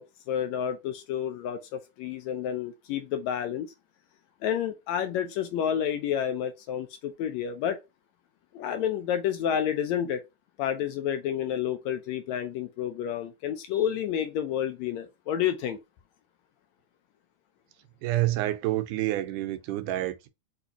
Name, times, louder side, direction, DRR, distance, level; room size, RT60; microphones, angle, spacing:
voice 1, 0.0-3.7 4.4-7.8 8.5-10.2 10.6-15.8, left 9 dB, 80° left, 1.7 m, -30 dB
voice 2, 18.0-20.3, right 15 dB, 85° right, 2.2 m, -28 dB
6.4 x 2.8 x 2.8 m
omnidirectional pair, 3.5 m